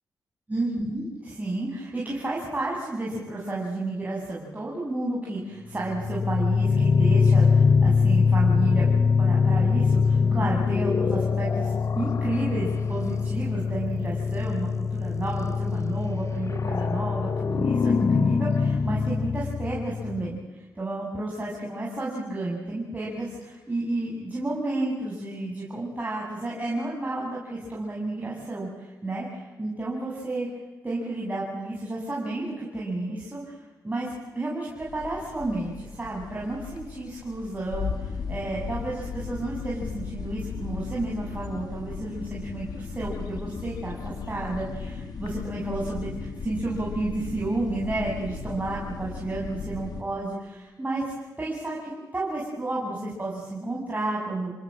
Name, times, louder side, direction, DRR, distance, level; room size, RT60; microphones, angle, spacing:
voice 1, 0.5-8.9 9.2-20.4 20.7-30.5 30.8-33.5 33.8-51.1 51.4-54.5, right 2 dB, 25° right, -4 dB, 6.8 m, -31 dB
sound 1, 5.8-20.4, left 5 dB, 50° left, 0.8 m, -23 dB
sound 2, 34.8-50.0, left 5 dB, 80° left, 2.8 m, -36 dB
29.0 x 19.0 x 7.6 m, 1.2 s
cardioid pair, 70°, 7 cm